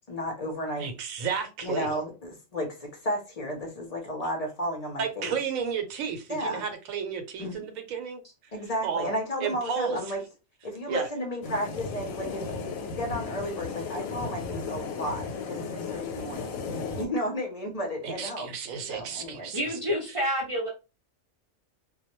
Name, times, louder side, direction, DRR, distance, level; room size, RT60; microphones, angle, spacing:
voice 1, 0.1-0.9 1.6-5.3 6.3-6.6 7.4-7.6 8.5-10.2 10.6-16.5 17.0-18.5 18.9-19.5, equal, 45° left, 0.5 m, -33 dB
voice 2, 0.8-1.9 5.0-8.2 8.8-9.1 9.4-10.0 10.9-11.1 18.0-19.8, right 6 dB, 90° right, 1.0 m, -32 dB
sound 1, 11.4-17.1, left 4 dB, 90° left, 1.0 m, -35 dB
voice 3, 19.5-20.7, equal, 45° right, 0.4 m, -28 dB
2.2 x 2.1 x 2.9 m
omnidirectional pair, 1.3 m